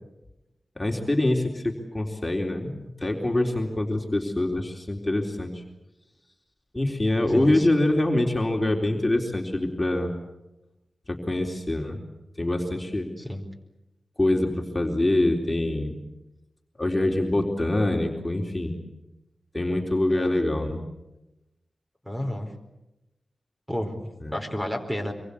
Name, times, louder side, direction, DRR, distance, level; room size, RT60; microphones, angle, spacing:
voice 1, 0.8-5.6 6.7-10.1 11.1-12.0 12.4-13.1 14.2-16.0 16.8-18.8 19.5-20.8 24.2-24.3, left 1 dB, 20° left, 1 dB, 3.9 m, -25 dB
voice 2, 7.3-7.7 13.2-13.4 20.1-20.4 22.1-22.5 23.7-24.0 24.3-25.1, equal, 10° right, 4 dB, 4.8 m, -31 dB
26.0 x 23.0 x 8.5 m, 0.96 s
wide cardioid pair, 70°, 0 cm